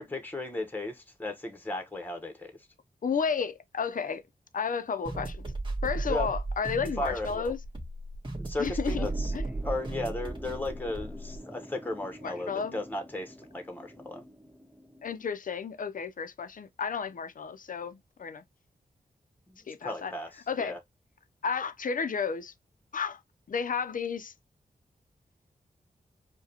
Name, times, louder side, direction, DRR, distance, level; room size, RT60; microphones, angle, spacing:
voice 1, 0.0-2.5 6.1-6.3 7.0-7.5 8.4-9.3 9.6-14.2 19.5-20.3 20.6-20.8, left 2 dB, 10° left, 1.0 m, -35 dB
voice 2, 3.0-4.2 4.5-5.4 5.8-7.6 8.6-9.1 9.3-9.4 12.2-12.8 15.0-18.4 19.7-20.1 20.5-20.8 21.4-22.5 22.9-23.2 23.5-24.3, left 6 dB, 60° left, 0.6 m, -32 dB
sound 1, 5.0-11.4, right 2 dB, 30° right, 1.6 m, -35 dB
sound 2, 8.9-15.2, equal, 5° right, 0.5 m, -46 dB
4.8 x 2.3 x 2.8 m
cardioid pair, 65°, 16 cm